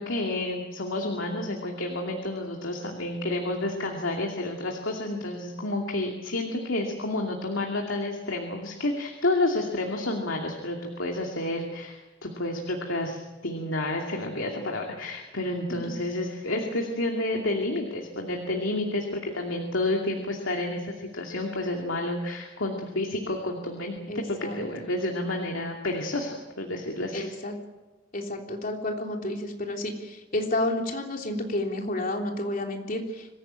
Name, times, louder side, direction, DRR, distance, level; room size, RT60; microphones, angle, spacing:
voice 1, 0.0-27.3, left 2 dB, 90° left, 1 dB, 2.6 m, -30 dB
voice 2, 24.1-24.6 27.1-27.5 28.1-33.3, left 1 dB, 45° left, 2 dB, 3.4 m, -30 dB
25.0 x 15.5 x 8.9 m, 1.1 s
head